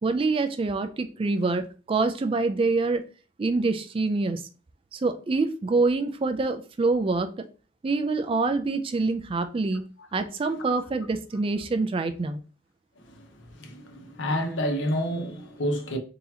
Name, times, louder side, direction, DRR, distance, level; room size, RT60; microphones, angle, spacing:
voice 1, 0.0-3.0 3.4-4.4 4.9-7.3 7.8-9.8 10.1-12.4, right 3 dB, 30° right, 0.3 m, -26 dB
voice 2, 13.0-16.0, equal, 75° left, 0.7 m, -29 dB
3.9 x 2.8 x 2.7 m
head